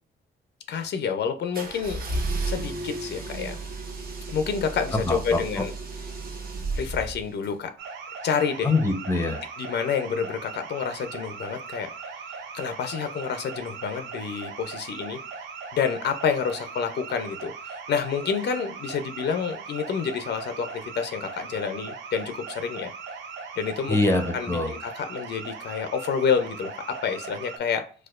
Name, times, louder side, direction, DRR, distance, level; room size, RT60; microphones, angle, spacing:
voice 1, 0.7-2.1 2.4-3.6 4.3-5.7 6.8-7.7 8.2-8.7 9.6-11.9 12.5-15.2 15.7-22.9 23.6-24.0 24.3-27.8, left 6 dB, 60° left, 8 dB, 0.5 m, -28 dB
sound 1, 1.5-7.5, right 3 dB, 45° right, 0.9 m, -33 dB
voice 2, 5.1-5.7 8.6-9.4 23.9-24.7, left 2 dB, 15° left, 6 dB, 0.7 m, -24 dB
sound 2, 7.8-27.6, right 5 dB, 70° right, 0.6 m, -39 dB
4.2 x 2.4 x 2.3 m, 0.41 s
cardioid pair, 90°, 20 cm